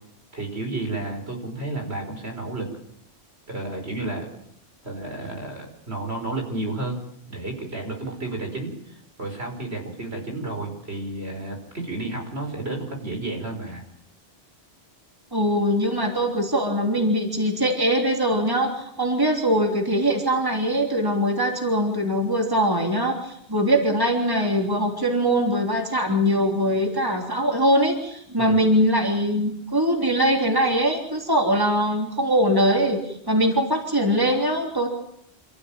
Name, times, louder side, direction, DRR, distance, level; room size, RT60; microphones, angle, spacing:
voice 1, 0.3-2.7 3.5-4.3 4.8-7.0 7.3-13.8 28.4-28.6, right 2 dB, 70° right, 3 dB, 5.7 m, -31 dB
voice 2, 15.3-34.9, equal, 20° right, 2 dB, 3.4 m, -22 dB
27.5 x 15.0 x 9.0 m, 0.73 s
omnidirectional pair, 1.1 m